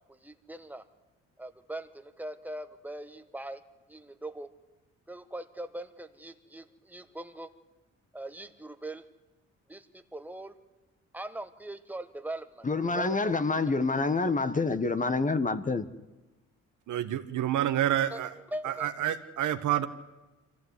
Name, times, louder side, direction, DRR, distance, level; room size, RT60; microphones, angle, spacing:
voice 1, 0.1-0.8 1.4-3.6 3.9-4.5 5.1-7.5 8.1-9.1 9.7-10.6 11.1-12.7 12.9-13.3 18.1-18.2 18.5-18.9, right 1 dB, 5° right, 1.5 m, -41 dB
voice 2, 12.6-15.9, left 3 dB, 25° left, 1.3 m, -27 dB
voice 3, 16.9-18.4 18.6-19.9, right 11 dB, 75° right, 1.6 m, -28 dB
24.5 x 15.5 x 9.8 m
cardioid pair, 90°, 30 cm